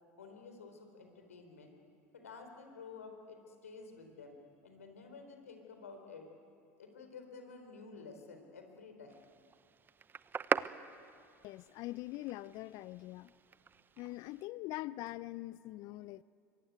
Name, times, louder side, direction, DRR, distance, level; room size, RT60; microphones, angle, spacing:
voice 1, 0.2-1.8 2.1-4.4 4.6-6.3 6.8-9.2, left 4 dB, 85° left, 4.0 m, -51 dB
sound 1, 9.1-14.4, right 6 dB, 25° right, 0.7 m, -41 dB
voice 2, 11.4-13.3 14.0-16.2, left 17 dB, 55° left, 0.6 m, -43 dB
25.0 x 23.0 x 9.3 m
hypercardioid pair, 80°, 8 cm